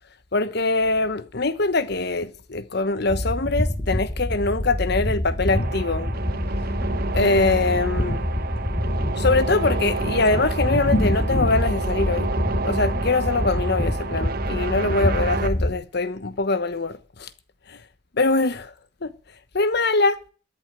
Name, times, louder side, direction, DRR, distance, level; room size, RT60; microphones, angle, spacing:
voice 1, 0.3-6.1 7.1-8.2 9.2-12.3 12.6-17.3 18.2-18.7 19.0-19.1 19.5-20.2, left 3 dB, 60° left, 1.1 m, -23 dB
sound 1, 3.1-15.7, left 1 dB, 25° left, 2.8 m, -26 dB
sound 2, 5.5-15.5, right 4 dB, 55° right, 1.0 m, -30 dB
13.0 x 7.9 x 9.0 m
head